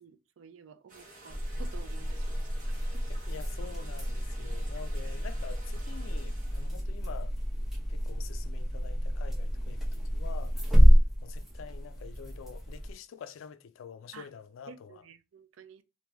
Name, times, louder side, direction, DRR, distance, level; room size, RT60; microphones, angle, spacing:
voice 1, 0.0-3.0 9.9-10.0 10.8-11.0 14.1-14.3 14.7-15.8, right 5 dB, 90° right, 0.4 m, -52 dB
sound 1, 0.9-6.8, right 1 dB, 40° right, 1.0 m, -52 dB
sound 2, 1.3-12.9, equal, ahead, 0.8 m, -27 dB
voice 2, 3.1-7.4 7.9-15.0, left 7 dB, 90° left, 0.3 m, -47 dB
3.0 x 2.6 x 2.3 m
head